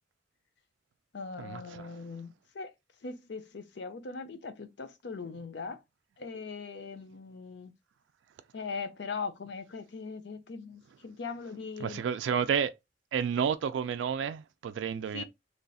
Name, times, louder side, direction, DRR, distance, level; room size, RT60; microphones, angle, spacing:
voice 1, 1.1-2.7 3.0-5.8 6.2-7.7 8.5-12.1 15.1-15.2, left 4 dB, 70° left, 0.5 m, -40 dB
voice 2, 11.8-12.7 13.1-15.2, right 7 dB, 85° right, 0.3 m, -30 dB
3.3 x 2.3 x 4.0 m
head